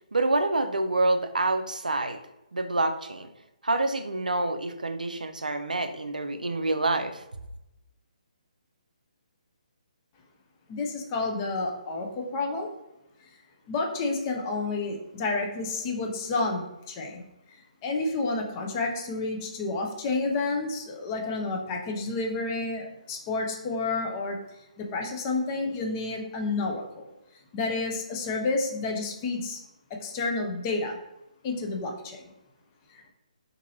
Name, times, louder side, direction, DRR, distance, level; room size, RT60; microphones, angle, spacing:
voice 1, 0.1-2.2 2.5-3.3 3.6-7.2, right 2 dB, 85° right, 7 dB, 0.3 m, -27 dB
voice 2, 10.7-12.7 13.7-17.2 17.8-24.4 24.8-27.1 27.5-29.6 29.9-31.0 31.4-32.2 32.9-33.1, left 3 dB, 25° left, 2 dB, 0.5 m, -30 dB
2.8 x 2.6 x 2.8 m, 0.91 s
figure-of-eight pair, 140°, 4 cm